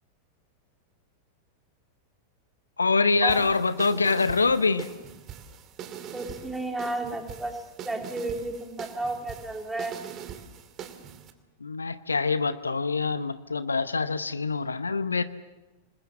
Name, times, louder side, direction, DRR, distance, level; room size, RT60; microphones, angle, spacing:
voice 1, 2.8-4.9 11.6-15.2, left 4 dB, 75° left, 14 dB, 0.8 m, -25 dB
sound 1, 3.3-11.3, right 8 dB, 35° right, 2.5 m, -42 dB
voice 2, 6.1-7.6 7.8-9.9, right 2 dB, 5° right, 2 dB, 3.8 m, -32 dB
28.0 x 21.0 x 7.3 m, 1.1 s
figure-of-eight pair, 90°, 0 cm